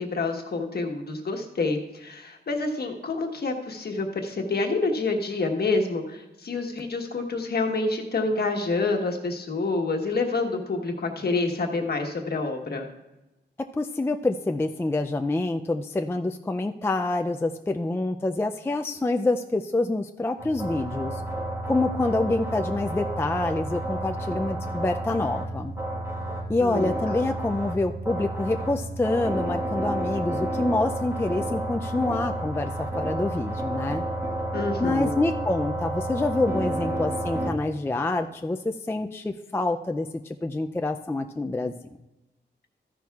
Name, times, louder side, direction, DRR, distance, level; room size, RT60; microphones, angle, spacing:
voice 1, 0.0-12.9 26.6-27.2 34.5-35.1, left 3 dB, 60° left, 3 dB, 1.2 m, -28 dB
voice 2, 13.6-21.2 21.7-25.7 26.5-34.0 34.8-41.7, left 2 dB, 15° left, 6 dB, 0.3 m, -27 dB
sound 1, 20.4-37.5, right 1 dB, 15° right, 1.4 m, -30 dB
13.5 x 10.5 x 2.4 m, 0.99 s
wide cardioid pair, 135°, 19 cm